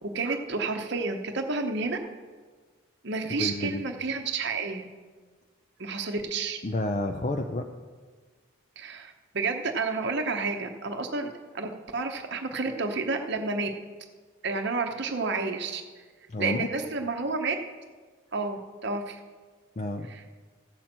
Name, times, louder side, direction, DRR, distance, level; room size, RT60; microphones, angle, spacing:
voice 1, 0.0-2.0 3.0-4.9 5.8-6.6 8.8-13.7 14.4-15.8 16.4-17.5 18.3-19.2 20.1-20.3, right 4 dB, 50° right, 4 dB, 0.8 m, -30 dB
voice 2, 3.3-3.8 6.6-7.7 16.3-16.7 19.8-20.1, left 2 dB, 35° left, 4 dB, 0.4 m, -30 dB
15.0 x 7.4 x 4.4 m, 1.5 s
head